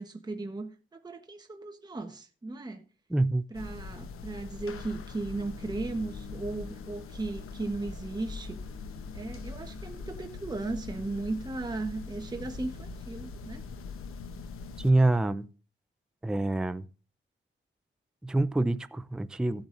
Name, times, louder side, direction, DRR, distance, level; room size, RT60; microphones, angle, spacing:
voice 1, 0.0-2.8 3.5-8.6 9.1-13.6, right 2 dB, 20° right, 1.1 m, -36 dB
voice 2, 3.1-3.4 14.8-15.5 16.2-16.8 18.2-19.7, right 2 dB, 5° right, 0.4 m, -26 dB
sound 1, 3.5-14.9, left 4 dB, 90° left, 1.0 m, -42 dB
15.5 x 8.8 x 2.6 m
wide cardioid pair, 130°, 21 cm